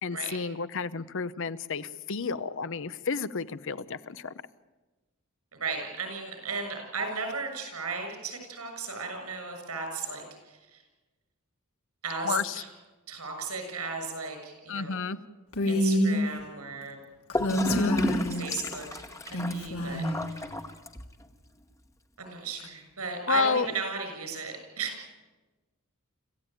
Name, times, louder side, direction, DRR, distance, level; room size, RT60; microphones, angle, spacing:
voice 1, 0.0-4.3 12.2-12.6 14.7-15.2 17.4-18.0 23.3-23.7, left 5 dB, 60° left, 14 dB, 0.8 m, -31 dB
voice 2, 5.5-10.8 12.0-12.7 13.1-15.0 15.7-17.0 18.4-20.5 22.2-25.2, right 4 dB, 90° right, 5 dB, 6.8 m, -36 dB
Female speech woman speaking, 15.5-16.2 17.3-18.8 19.3-20.2, left 1 dB, 80° left, 3.0 m, -27 dB
Gurgling / Toilet flush, 17.3-21.3, left 1 dB, 15° left, 1.2 m, -33 dB
26.5 x 15.0 x 9.1 m, 1.2 s
head